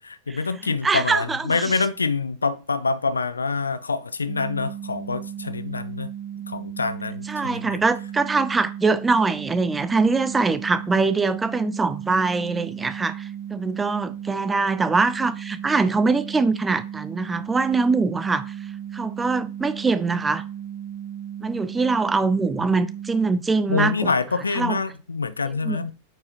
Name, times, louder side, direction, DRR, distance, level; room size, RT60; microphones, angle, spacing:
voice 1, 0.3-6.1 6.5-7.8 23.7-25.9, left 4 dB, 75° left, 0.5 m, -26 dB
voice 2, 0.8-1.6 7.3-18.5 18.9-20.4 21.4-24.1 24.6-24.8 25.6-25.8, right 4 dB, 15° right, 0.5 m, -23 dB
sound 1, 4.3-23.3, right 10 dB, 40° right, 1.2 m, -35 dB
9.0 x 4.8 x 2.9 m
figure-of-eight pair, 90°, 0 cm